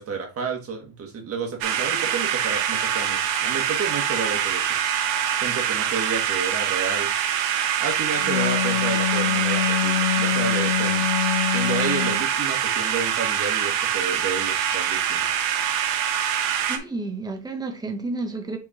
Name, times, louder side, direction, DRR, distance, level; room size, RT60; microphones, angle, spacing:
voice 1, 0.0-4.8 5.4-7.1 7.8-11.1 11.4-15.3, right 5 dB, 30° right, 1.6 m, -31 dB
sound 1, 1.6-16.8, right 9 dB, 75° right, 1.4 m, -24 dB
Wind instrument woodwind instrument, 8.0-12.2, left 12 dB, 35° left, 1.1 m, -25 dB
voice 2, 16.5-18.6, right 3 dB, 10° right, 1.0 m, -31 dB
6.2 x 3.7 x 4.2 m
cardioid pair, 160°, 46 cm